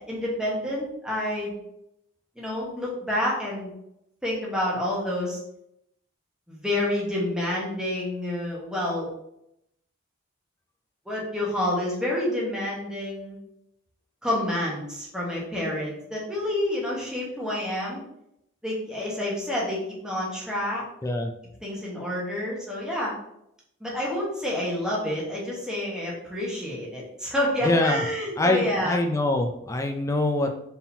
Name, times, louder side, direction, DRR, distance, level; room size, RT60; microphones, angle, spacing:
voice 1, 0.1-1.5 2.4-3.7 4.2-5.4 6.5-9.1 11.1-13.4 14.2-18.0 18.6-20.8 21.6-23.1 23.8-29.0, left 1 dB, 5° right, -5 dB, 1.2 m, -28 dB
voice 2, 27.6-28.0 28.4-30.5, left 2 dB, 15° left, 3 dB, 0.4 m, -24 dB
4.3 x 3.7 x 2.8 m, 0.77 s
head